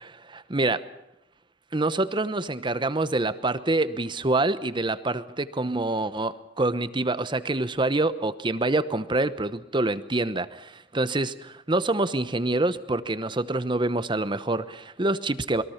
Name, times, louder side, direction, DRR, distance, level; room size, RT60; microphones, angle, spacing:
voice 1, 0.0-0.8 1.7-15.6, right 2 dB, 25° right, 13 dB, 1.0 m, -26 dB
27.5 x 22.0 x 5.8 m, 0.86 s
head